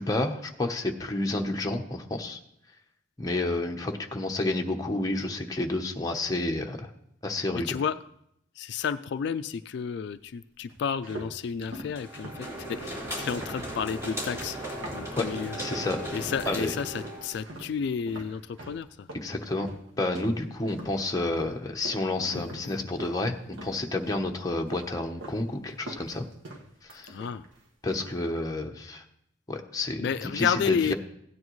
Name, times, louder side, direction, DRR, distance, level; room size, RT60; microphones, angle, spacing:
voice 1, 0.0-2.4 3.2-6.9 7.2-7.8 15.2-15.3 15.6-16.0 16.5-16.7 19.1-19.7 20.0-26.2 26.9-27.1 27.8-29.0 29.5-30.9, left 2 dB, 20° left, 2 dB, 0.8 m, -30 dB
voice 2, 7.5-7.9 8.6-14.6 14.9-15.6 16.1-19.1 22.3-22.8 27.1-27.5 30.0-30.9, left 7 dB, 60° left, 12 dB, 0.3 m, -31 dB
sound 1, 10.7-15.6 15.9-16.6 16.9-23.2 23.5-24.3 24.7-25.4 25.7-27.6 27.9-28.3, right 2 dB, 80° right, 1.4 m, -43 dB
sound 2, 11.9-17.4, equal, 15° right, 2.9 m, -36 dB
16.0 x 9.5 x 3.1 m, 0.75 s
head